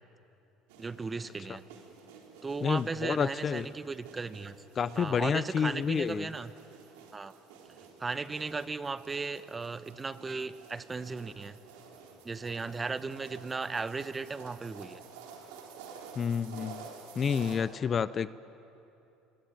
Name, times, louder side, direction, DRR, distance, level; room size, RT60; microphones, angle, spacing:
sound 1, 0.7-17.6, right 6 dB, 90° right, 3.9 m, -51 dB
voice 1, 0.8-1.6 2.4-4.5 5.0-6.5 7.1-7.3 8.0-11.6 12.2-15.0, right 4 dB, 20° right, 13 dB, 1.0 m, -36 dB
voice 2, 2.6-3.7 4.8-6.3 16.2-16.9 17.2-18.3, left 7 dB, 35° left, 17 dB, 0.6 m, -29 dB
27.5 x 22.5 x 9.3 m, 2.9 s
supercardioid pair, 105°, 0 cm